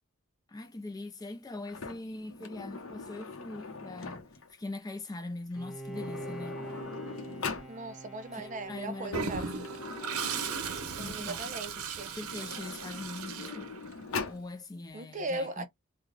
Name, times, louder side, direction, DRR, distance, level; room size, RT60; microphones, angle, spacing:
voice 1, 0.5-4.2 4.5-6.6 8.3-9.7 11.0-11.5 12.1-13.7 14.3-15.7, left 2 dB, 15° left, 0.4 m, -42 dB
Sliding door, 1.7-4.5 5.5-5.6 5.9-7.7 8.8-11.4 12.1-14.4, left 4 dB, 70° left, 0.8 m, -41 dB
Bowed string instrument, 5.5-11.1, right 1 dB, 5° right, 1.3 m, -45 dB
voice 2, 7.7-9.5 10.9-12.1 14.9-15.7, right 2 dB, 35° right, 0.6 m, -38 dB
Toilet flush, 9.1-14.2, right 6 dB, 85° right, 0.7 m, -37 dB
3.7 x 2.2 x 3.2 m
head